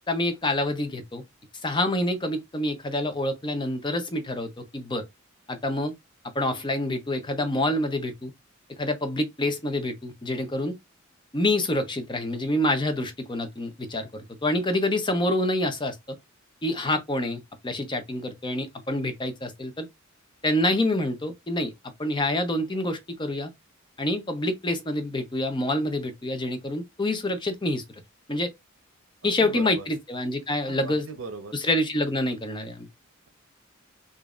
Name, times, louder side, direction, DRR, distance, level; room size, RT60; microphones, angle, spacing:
voice 1, 0.1-1.2 1.6-5.0 5.5-5.9 6.3-8.3 8.8-10.7 11.3-16.2 16.6-19.9 20.4-21.7 22.0-23.5 24.0-27.8 28.3-28.5 29.2-31.1 31.5-32.9, left 1 dB, 20° left, 0.7 m, -27 dB
voice 2, 29.2-29.9 30.7-31.6, right 4 dB, 75° right, 0.9 m, -38 dB
5.0 x 2.6 x 2.4 m
head